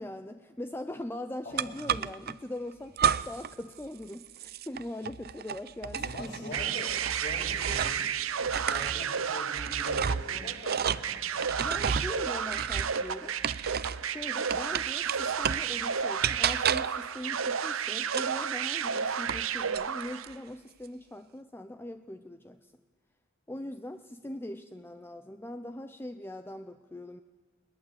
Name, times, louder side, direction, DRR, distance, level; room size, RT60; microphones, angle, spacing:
voice 1, 0.0-6.6 11.6-13.4 14.0-22.7 23.5-27.2, left 1 dB, 10° left, 9 dB, 0.6 m, -41 dB
sound 1, 1.6-2.3 3.0-3.5 3.8-8.1 8.4-14.1 14.5-15.7 16.2-17.0 18.1-19.5 19.7-20.3, right 8 dB, 50° right, 0.6 m, -32 dB
voice 2, 5.9-8.0 8.4-11.4, left 1 dB, 55° left, -2 dB, 7.4 m, -43 dB
sound 2, 6.5-20.3, right 7 dB, 85° right, 0.8 m, -32 dB
21.0 x 19.5 x 8.0 m, 1.4 s
head